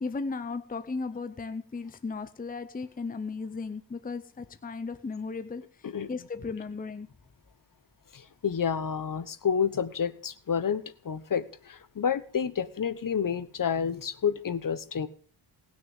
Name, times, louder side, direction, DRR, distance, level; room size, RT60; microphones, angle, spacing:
voice 1, 0.0-7.1, left 4 dB, 20° left, 0.7 m, -36 dB
voice 2, 8.1-15.1, left 7 dB, 50° left, 1.1 m, -29 dB
18.5 x 6.5 x 7.2 m
wide cardioid pair, 105°, 42 cm